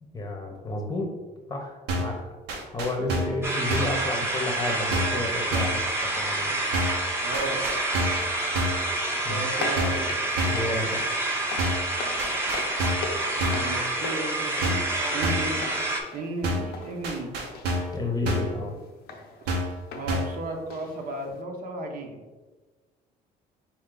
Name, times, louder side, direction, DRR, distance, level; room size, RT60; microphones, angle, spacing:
voice 1, 0.1-1.1 1.5-2.3 2.7-6.6 9.2-9.4 10.5-11.0 17.9-18.8, left 2 dB, 20° left, 2 dB, 0.8 m, -31 dB
sound 1, 1.9-2.2 2.5-3.4 3.7-4.0 4.9-5.2 5.5-5.8 6.7-7.1 7.3-8.3 8.5-8.9 9.8-10.1 10.4-10.7 11.6-11.9 12.2-13.1 13.4-13.7 14.6-14.9 15.2-15.6 16.4-16.8 17.0-18.0 18.3-18.6 19.5-19.8 20.1-20.4, equal, 90° right, 0.9 m, -28 dB
sound 2, 3.4-16.0, right 2 dB, 15° right, 0.9 m, -28 dB
voice 2, 7.2-7.6 9.3-10.3 13.5-14.9 15.1-15.7 16.1-17.3 19.9-22.2, right 2 dB, 55° right, 2 dB, 0.9 m, -34 dB
sound 3, 8.4-21.4, left 4 dB, 70° left, 0.6 m, -41 dB
4.3 x 3.2 x 3.8 m, 1.2 s
cardioid pair, 110°, 17 cm